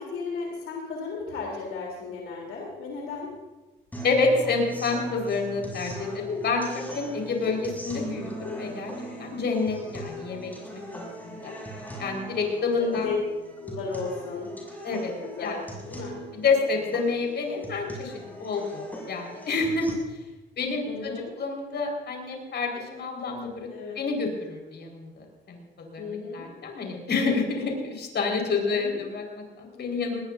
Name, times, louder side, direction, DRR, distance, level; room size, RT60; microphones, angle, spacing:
voice 1, 0.0-3.3 7.2-7.5 9.7-9.8 12.6-13.2 13.6-14.5 15.2-16.1 20.9-21.3 23.7-24.0 26.0-26.5 28.5-29.0, left 4 dB, 90° left, -1 dB, 3.5 m, -35 dB
sound 1, 3.9-19.9, right 1 dB, 10° left, 6.8 m, -40 dB
voice 2, 4.0-8.9 9.2-11.5 12.0-13.1 14.8-15.1 15.4-15.5 16.3-19.9 20.6-23.7 23.9-26.1 26.3-30.2, left 4 dB, 60° left, 1 dB, 4.9 m, -28 dB
20.0 x 20.0 x 2.7 m, 1.1 s
cardioid pair, 90°, 20 cm